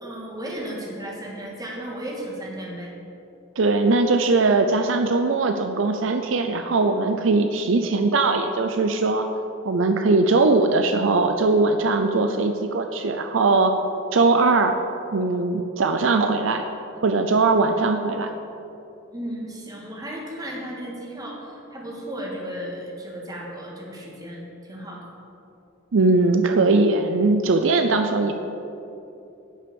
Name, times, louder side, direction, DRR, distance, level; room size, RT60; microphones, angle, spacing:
voice 1, 0.0-2.9 19.1-25.0, right 1 dB, 20° right, -2 dB, 1.9 m, -34 dB
voice 2, 3.6-9.3 9.6-13.7 14.1-14.7 15.1-16.7 17.0-18.3 25.9-28.3, right 3 dB, 70° right, 6 dB, 0.5 m, -20 dB
10.5 x 6.0 x 7.0 m, 2.9 s
head